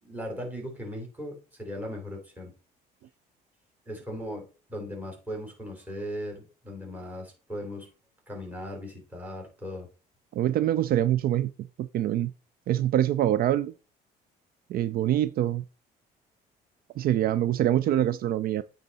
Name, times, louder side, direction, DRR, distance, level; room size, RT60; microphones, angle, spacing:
voice 1, 0.0-2.5 3.9-7.9 8.3-9.9, equal, 10° right, 3.5 m, -38 dB
voice 2, 10.3-11.5 11.8-12.3 12.7-13.7 14.7-15.6 17.0-18.6, right 12 dB, 60° right, 0.4 m, -25 dB
9.1 x 3.9 x 4.1 m
cardioid pair, 110°, 17 cm